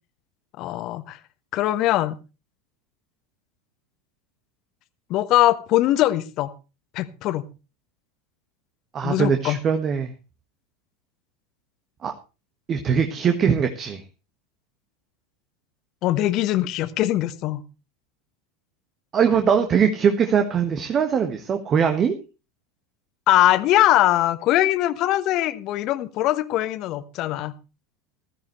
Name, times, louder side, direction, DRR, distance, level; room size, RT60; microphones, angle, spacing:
voice 1, 0.6-1.2 1.5-2.2 5.1-6.5 6.9-7.4 9.0-9.6 16.0-17.6 23.3-27.5, left 14 dB, 45° left, 1.2 m, -21 dB
voice 2, 8.9-10.1 12.0-12.1 12.7-14.0 19.1-22.1, right 7 dB, 35° right, 1.6 m, -21 dB
16.0 x 13.5 x 3.2 m
figure-of-eight pair, 85°, 0 cm